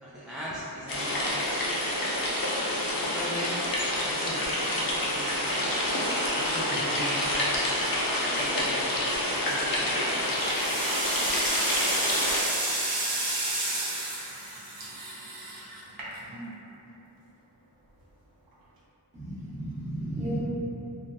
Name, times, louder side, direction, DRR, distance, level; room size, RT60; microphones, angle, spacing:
voice 1, 0.0-1.8 3.0-5.7 6.3-7.7 8.2-8.9 9.3-10.3 11.6-11.9, equal, ahead, -10 dB, 0.3 m, -39 dB
sound 1, 0.9-12.4, left 1 dB, 55° left, 0.6 m, -28 dB
sound 2, 9.3-9.7 10.2-16.5, right 2 dB, 60° right, 0.6 m, -31 dB
voice 2, 19.1-20.4, right 1 dB, 15° right, -11 dB, 1.1 m, -33 dB
3.3 x 2.0 x 2.6 m, 3.0 s
wide cardioid pair, 70°, 40 cm